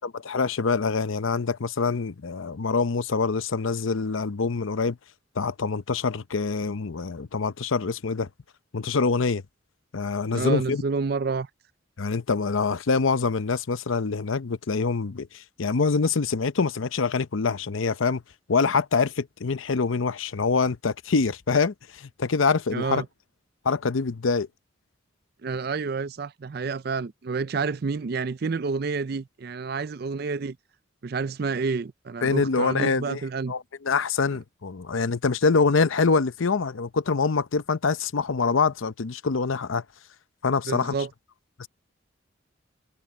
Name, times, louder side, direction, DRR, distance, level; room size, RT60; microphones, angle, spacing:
voice 1, 0.0-5.0 5.4-8.3 8.7-9.4 9.9-10.8 12.0-18.2 18.5-23.0 23.6-24.5 32.2-33.2 33.5-39.8 40.4-40.9 41.6-41.7, left 4 dB, 80° left, 0.7 m, -25 dB
voice 2, 10.3-11.5 22.7-23.1 25.4-30.6 31.0-33.5 40.7-41.1, right 4 dB, 50° right, 0.4 m, -29 dB
head